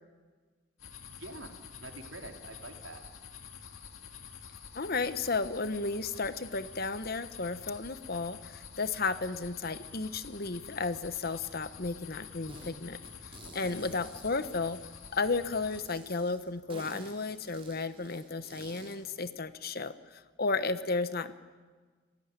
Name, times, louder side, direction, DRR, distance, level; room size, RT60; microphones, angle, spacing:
sound 1, 0.8-15.8, left 7 dB, 85° left, 2.2 m, -48 dB
voice 1, 1.1-3.0 13.4-14.0, right 2 dB, 75° right, 4 dB, 3.4 m, -47 dB
voice 2, 4.7-13.0 13.5-14.8 15.1-21.3, left 3 dB, 50° left, 12 dB, 1.1 m, -33 dB
sound 2, 12.5-12.7 13.0-15.2 15.7-19.0, right 2 dB, 25° right, 3.8 m, -51 dB
29.5 x 17.0 x 9.9 m, 1.4 s
head